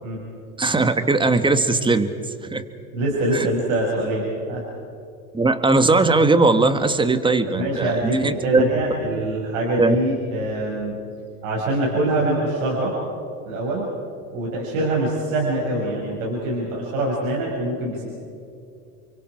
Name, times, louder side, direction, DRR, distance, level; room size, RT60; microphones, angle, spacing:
voice 1, 0.6-2.1 2.5-2.6 3.3-3.5 5.3-8.7 9.8-9.9, right 3 dB, 10° right, 10 dB, 1.6 m, -19 dB
voice 2, 2.9-4.6 7.5-10.9 11.4-12.9 13.4-13.9 14.3-18.1, right 1 dB, 70° right, -3 dB, 6.2 m, -24 dB
29.5 x 24.0 x 4.9 m, 2.5 s
hypercardioid pair, 105°, 42 cm